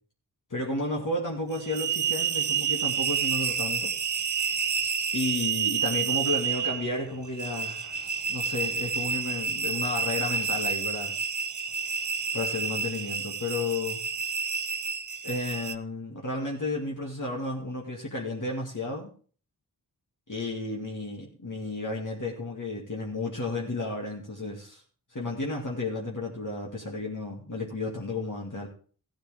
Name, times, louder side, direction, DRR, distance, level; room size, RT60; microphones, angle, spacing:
voice 1, 0.5-3.9 5.1-8.0 8.3-11.2 12.3-14.0 15.2-19.1 20.3-24.8 25.1-28.7, left 2 dB, 55° left, -3 dB, 2.3 m, -32 dB
sound 1, 1.5-15.7, right 6 dB, 55° right, 0.7 m, -29 dB
15.5 x 8.9 x 3.5 m, 0.41 s
wide cardioid pair, 50°, 37 cm